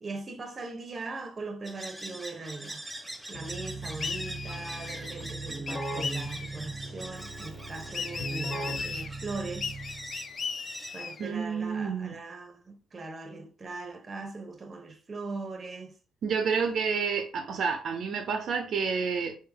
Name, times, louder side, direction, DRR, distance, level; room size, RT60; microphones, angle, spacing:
voice 1, 0.0-2.9 3.3-9.7 10.9-15.9, right 3 dB, 35° right, 0.8 m, -40 dB
sound 1, 1.6-11.8, right 1 dB, 5° right, 0.6 m, -43 dB
Keyboard (musical), 3.3-10.2, right 2 dB, 20° left, 1.4 m, -38 dB
sound 2, 4.0-5.1 5.7-6.6 7.9-9.1 9.6-11.3, left 5 dB, 45° left, 0.4 m, -37 dB
voice 2, 11.2-12.1 16.2-19.4, right 5 dB, 65° right, 0.6 m, -29 dB
3.3 x 2.9 x 3.4 m
cardioid pair, 90°, 0 cm